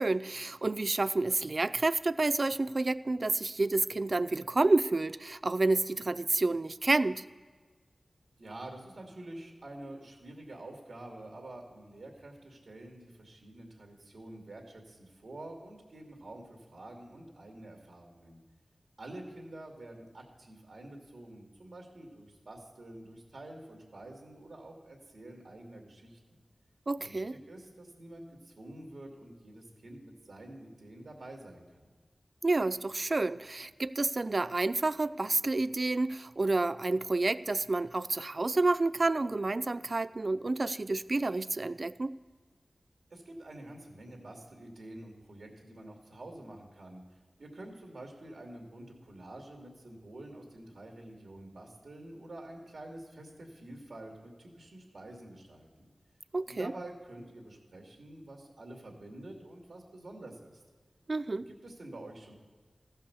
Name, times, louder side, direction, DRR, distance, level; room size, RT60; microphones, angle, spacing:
voice 1, 0.0-7.2 26.9-27.3 32.4-42.1 56.3-56.7 61.1-61.5, right 2 dB, 50° right, 16 dB, 0.3 m, -29 dB
voice 2, 8.4-18.4 19.0-26.2 27.0-31.9 43.1-47.0 47.4-55.9 56.5-60.6 61.5-62.3, right 1 dB, 75° right, 1 dB, 2.2 m, -48 dB
15.0 x 5.6 x 6.8 m, 1.4 s
wide cardioid pair, 60°, 0 cm